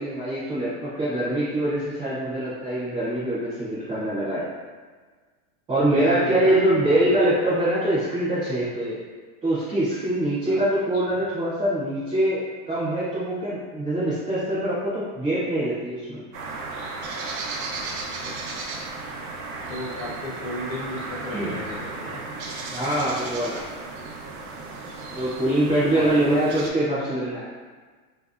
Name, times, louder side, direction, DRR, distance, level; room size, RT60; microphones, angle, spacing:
voice 1, 0.0-4.5 5.7-9.0 9.4-16.2 21.3-21.6 22.7-23.6 25.1-27.7, right 1 dB, 10° right, -13 dB, 0.4 m, -24 dB
voice 2, 5.9-6.8 7.1-7.2 10.5-10.6 10.9-11.2 18.2-19.1 19.7-22.2 25.9-26.6, left 1 dB, 45° left, -3 dB, 0.6 m, -35 dB
sound 1, 16.3-26.7, right 3 dB, 75° right, 0.7 m, -35 dB
3.5 x 2.6 x 2.3 m, 1.5 s
supercardioid pair, 165°, 43 cm